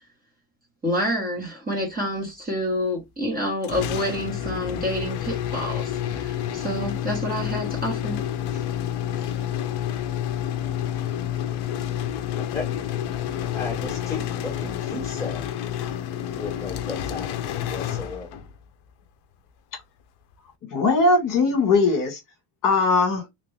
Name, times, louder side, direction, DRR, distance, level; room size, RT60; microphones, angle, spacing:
voice 1, 0.8-8.2, equal, 20° right, 1.2 m, -28 dB
sound 1, 3.6-18.6, left 10 dB, 55° left, 0.6 m, -29 dB
voice 2, 12.4-12.7 13.5-15.5 16.3-18.4, left 3 dB, 5° left, 1.4 m, -35 dB
voice 3, 20.7-22.2 22.6-23.2, left 3 dB, 40° left, 1.4 m, -19 dB
3.0 x 2.5 x 3.2 m
cardioid pair, 150°, 48 cm